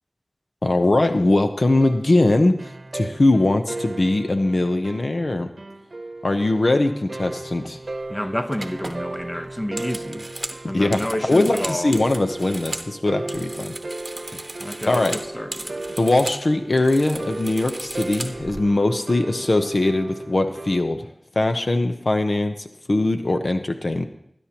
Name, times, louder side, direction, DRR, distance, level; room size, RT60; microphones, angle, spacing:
voice 1, 0.6-5.5 6.2-7.8 10.6-13.7 14.9-15.2 16.0-21.1 21.4-24.1, left 2 dB, 70° left, 6 dB, 0.8 m, -21 dB
sound 1, 1.8-20.8, right 2 dB, 80° right, 0.8 m, -36 dB
sound 2, 7.9-8.1 8.5-12.9 13.2-16.4 16.7-18.6, right 1 dB, 40° right, 0.9 m, -36 dB
voice 2, 8.1-10.3 10.7-12.0 14.3-16.0, left 1 dB, 25° left, 7 dB, 0.9 m, -30 dB
20.0 x 10.0 x 3.0 m, 0.73 s
wide cardioid pair, 45°, 0 cm